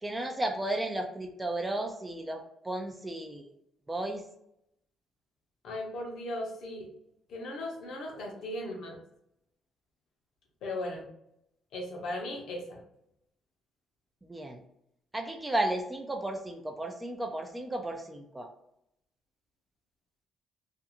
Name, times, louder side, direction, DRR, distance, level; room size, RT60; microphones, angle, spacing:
voice 1, 0.0-3.5 3.9-4.2 14.2-14.6 15.1-18.5, right 1 dB, 15° right, 3 dB, 0.3 m, -34 dB
voice 2, 5.6-6.9 7.3-9.0 10.6-11.1 11.7-12.8, left 1 dB, 75° left, 1 dB, 0.7 m, -37 dB
2.5 x 2.3 x 2.8 m, 0.78 s
cardioid pair, 90°, 0 cm